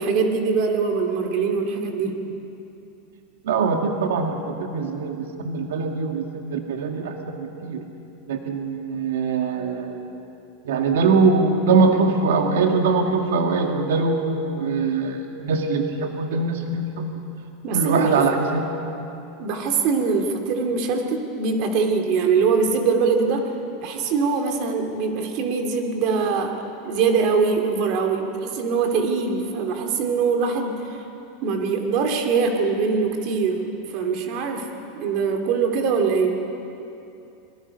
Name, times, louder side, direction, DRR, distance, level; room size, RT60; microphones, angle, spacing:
voice 1, 0.0-2.2 17.6-18.2 19.4-23.5 23.8-26.5 26.8-30.8 31.4-36.4, right 5 dB, 45° right, 4 dB, 2.6 m, -23 dB
voice 2, 3.4-7.8 8.3-10.0 10.7-17.1 17.7-18.6, right 4 dB, 90° right, 3 dB, 2.0 m, -22 dB
26.5 x 23.5 x 5.5 m, 2.8 s
supercardioid pair, 160°, 0 cm